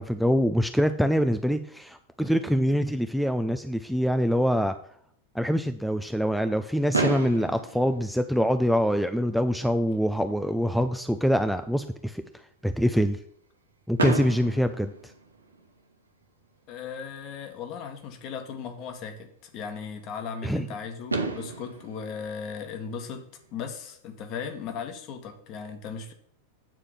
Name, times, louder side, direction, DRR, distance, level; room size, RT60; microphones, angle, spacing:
voice 1, 0.0-4.7 5.3-12.2 12.6-13.2 13.9-15.1 20.4-20.7, equal, ahead, 8 dB, 0.5 m, -25 dB
Fireworks, 6.9-9.0 9.8-9.9 10.1-10.3 10.6-10.7 14.0-15.8 17.5-17.6 20.6-20.7 21.1-23.4, right 3 dB, 75° right, 1.1 m, -32 dB
voice 2, 16.7-26.1, left 6 dB, 40° left, 6 dB, 1.5 m, -37 dB
9.1 x 4.9 x 5.9 m, 0.63 s
figure-of-eight pair, 90°, 0 cm